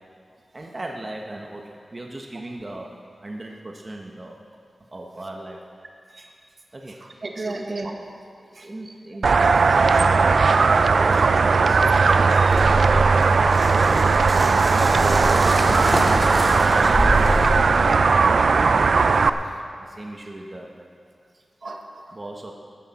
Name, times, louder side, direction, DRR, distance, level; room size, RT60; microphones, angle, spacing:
voice 1, 0.5-3.0 3.2-4.4 4.9-5.6 6.7-7.2 7.4-7.6 8.4-10.4 10.7-11.8 12.9-15.7 16.4-20.9 22.1-22.5, right 1 dB, 40° right, 0 dB, 1.2 m, -37 dB
voice 2, 7.0-7.9 8.5-8.7 11.8-12.0 12.3-12.6 21.6-22.1, right 2 dB, 60° right, 2 dB, 1.5 m, -34 dB
sound 1, 9.2-19.3, right 4 dB, 75° right, 0.5 m, -18 dB
sound 2, 12.5-17.9, equal, 5° right, 3.1 m, -25 dB
15.0 x 13.5 x 4.3 m, 2.3 s
cardioid pair, 60°, 0 cm